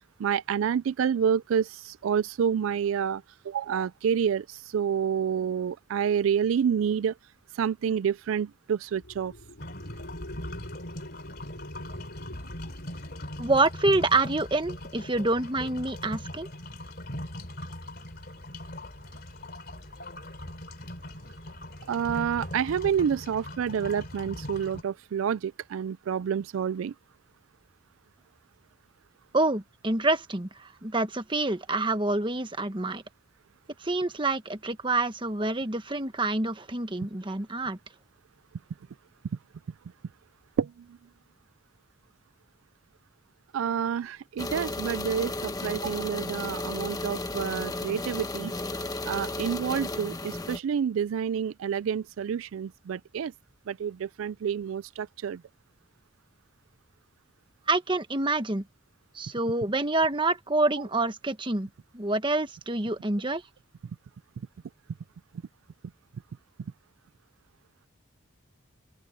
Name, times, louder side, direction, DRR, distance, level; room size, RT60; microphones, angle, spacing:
voice 1, 0.2-7.1 7.5-9.3 21.9-26.9 40.6-40.9 43.5-48.5 49.0-53.3 53.7-55.4, right 7 dB, 80° right, 0.3 m, -28 dB
sound 1, 8.9-13.8, left 1 dB, 80° left, 6.4 m, -45 dB
sound 2, 9.6-24.8, left 1 dB, 50° left, 3.2 m, -40 dB
voice 2, 13.4-16.5 29.3-33.0 33.8-37.8 57.7-58.6 59.1-61.7 61.9-63.4, right 2 dB, 25° right, 1.3 m, -27 dB
sound 3, 44.4-50.6, left 2 dB, 20° left, 1.1 m, -34 dB
open air
head